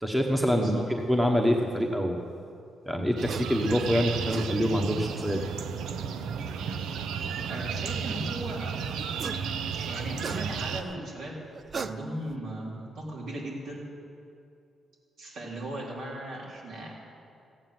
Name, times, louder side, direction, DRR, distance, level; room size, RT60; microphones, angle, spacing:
voice 1, 0.0-2.2 2.9-5.5, equal, 5° right, 2 dB, 1.2 m, -26 dB
sound 1, 3.2-10.8, right 6 dB, 85° right, 0.7 m, -33 dB
sound 2, 3.3-3.5 4.1-4.5 5.9-6.0 9.0-9.5 9.8-10.8 11.5-12.4, right 5 dB, 45° right, 0.5 m, -37 dB
voice 2, 7.5-9.3 9.9-11.4 11.7-13.8 15.2-16.9, right 1 dB, 70° right, -3 dB, 3.6 m, -37 dB
15.0 x 9.0 x 7.7 m, 2.5 s
cardioid pair, 95°, 0 cm